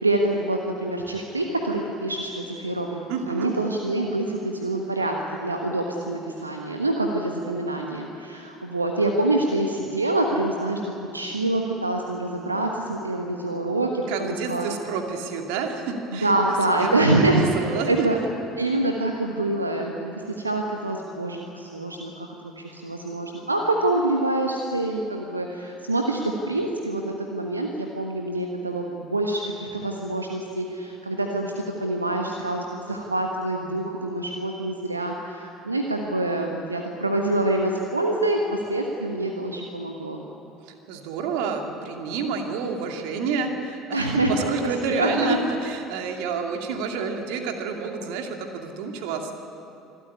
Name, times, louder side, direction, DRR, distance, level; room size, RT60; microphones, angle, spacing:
voice 1, 0.0-14.8 16.1-18.2 18.6-40.2 43.9-45.4, right 2 dB, 85° right, 2 dB, 1.2 m, -26 dB
voice 2, 3.1-3.5 14.1-18.3 40.7-49.3, right 5 dB, 60° right, 4 dB, 2.5 m, -29 dB
25.0 x 13.5 x 9.7 m, 2.8 s
figure-of-eight pair, 65°, 0 cm